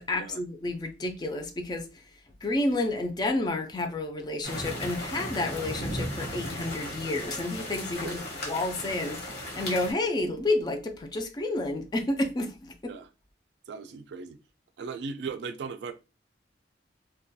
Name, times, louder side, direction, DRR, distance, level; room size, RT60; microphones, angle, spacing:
voice 1, 0.0-1.9 2.4-12.9, left 2 dB, 25° left, 0.3 m, -30 dB
sound 1, 4.4-9.9, left 1 dB, 65° left, 1.1 m, -36 dB
voice 2, 13.7-14.4 14.8-15.9, right 5 dB, 75° right, 0.3 m, -37 dB
2.3 x 2.2 x 2.6 m
head